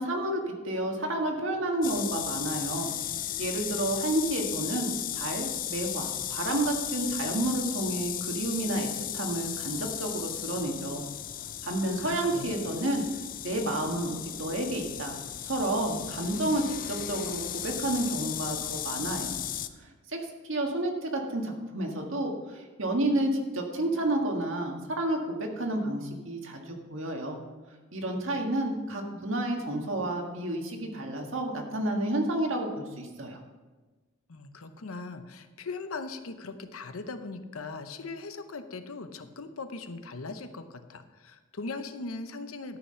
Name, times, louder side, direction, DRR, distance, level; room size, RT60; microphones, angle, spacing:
voice 1, 0.0-2.9 3.4-8.9 9.1-11.1 11.6-13.0 13.4-15.2 15.4-19.4 19.8-20.2 20.5-27.4 27.9-33.4, right 1 dB, 70° right, 2 dB, 1.7 m, -30 dB
sound 1, 1.8-19.7, left 11 dB, 40° left, 0.4 m, -35 dB
voice 2, 12.0-12.7 34.3-42.8, left 3 dB, 90° left, 9 dB, 0.8 m, -39 dB
13.0 x 5.8 x 5.7 m, 1.2 s
head